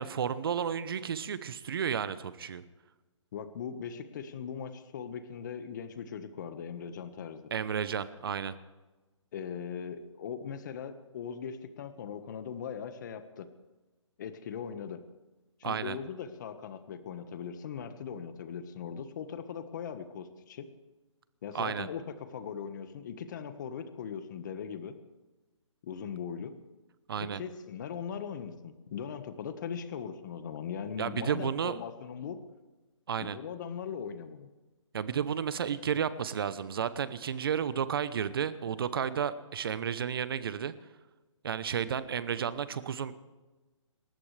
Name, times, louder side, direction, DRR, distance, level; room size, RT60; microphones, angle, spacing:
voice 1, 0.0-2.6 7.5-8.6 15.6-16.0 21.5-21.9 27.1-27.4 31.0-31.8 33.1-33.4 34.9-40.7 41.4-43.1, right 7 dB, 45° right, 14 dB, 0.9 m, -32 dB
voice 2, 3.3-7.5 9.3-13.5 14.2-15.0 15.6-20.7 21.4-25.0 25.8-26.5 27.3-32.4 33.2-34.5, left 7 dB, 35° left, 9 dB, 1.5 m, -39 dB
28.0 x 14.0 x 3.4 m, 1.2 s
hypercardioid pair, 160°, 16 cm